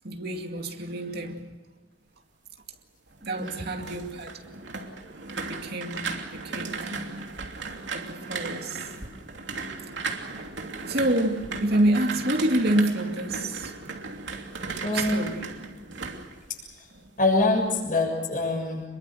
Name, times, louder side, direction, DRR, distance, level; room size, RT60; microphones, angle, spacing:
voice 1, 0.0-1.6 3.2-4.3 5.0-5.2 5.5-6.9 7.9-8.8 10.9-13.7 14.9-15.5, right 1 dB, 60° right, 2.4 m, -27 dB
sound 1, 3.1-17.1 17.4-17.8, right 4 dB, 85° right, 3.0 m, -36 dB
voice 2, 14.8-15.3 17.2-18.8, left 2 dB, 50° left, 7.2 m, -24 dB
28.5 x 22.5 x 6.5 m
head